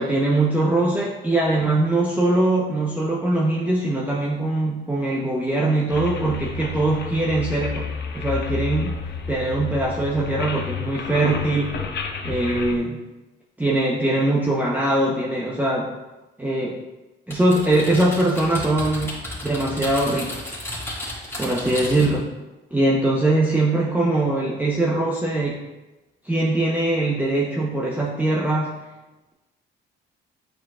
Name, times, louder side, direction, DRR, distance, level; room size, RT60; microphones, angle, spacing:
voice 1, 0.0-9.0 9.3-11.8 12.2-13.0 13.6-15.9 16.4-16.8 17.3-20.5 21.4-22.2 22.7-25.6 26.2-28.8, right 2 dB, 10° right, -5 dB, 0.9 m, -22 dB
sound 1, 5.9-12.8, left 4 dB, 60° left, 0.8 m, -30 dB
Typing, 17.3-22.2, left 1 dB, 10° left, 2.1 m, -33 dB
8.8 x 4.5 x 2.4 m, 1.1 s
cardioid pair, 90°, 20 cm